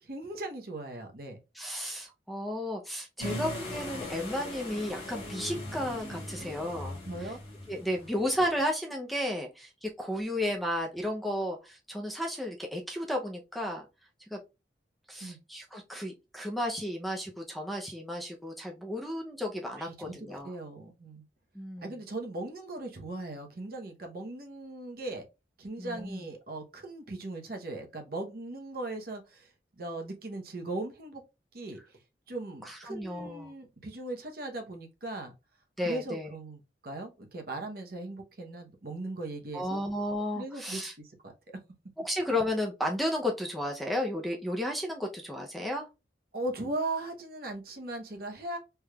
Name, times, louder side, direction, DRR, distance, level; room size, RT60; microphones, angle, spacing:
voice 1, 0.0-1.4 7.0-7.4 15.2-15.4 19.8-21.2 21.8-25.2 25.6-29.5 29.8-31.2 31.5-32.0 32.3-35.3 35.8-39.8 40.4-41.3 46.3-48.6, right 2 dB, 55° right, 0.8 m, -38 dB
voice 2, 1.5-7.3 7.7-13.9 14.3-14.4 15.1-20.5 21.5-21.9 25.8-26.2 32.6-33.5 35.8-36.3 39.5-40.9 42.0-45.9, left 1 dB, ahead, 0.5 m, -33 dB
sound 1, 3.2-8.6, left 1 dB, 35° left, 1.3 m, -40 dB
3.4 x 3.0 x 2.2 m
head